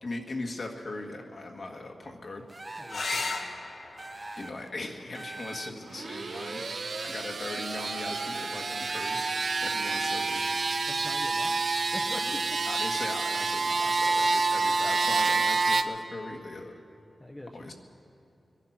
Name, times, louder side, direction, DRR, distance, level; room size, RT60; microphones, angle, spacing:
voice 1, 0.0-2.4 4.4-6.6 7.0-9.2 9.6-10.4 12.3-12.4 12.6-16.7 17.5-17.7, left 2 dB, 60° left, 2 dB, 1.7 m, -39 dB
sound 1, 2.5-3.2 4.0-4.7 5.1-6.0, right 2 dB, 25° right, 0.7 m, -43 dB
voice 2, 2.8-3.2 10.9-12.4 17.2-17.7, left 1 dB, 20° left, 3 dB, 0.9 m, -43 dB
sound 2, 2.9-7.9 9.8-10.4 13.9-14.0 14.3-14.4, left 3 dB, 75° left, 1.3 m, -39 dB
sound 3, 5.9-15.8, right 4 dB, 60° right, 0.7 m, -28 dB
22.5 x 10.5 x 6.0 m, 2.6 s
cardioid pair, 65°, 0 cm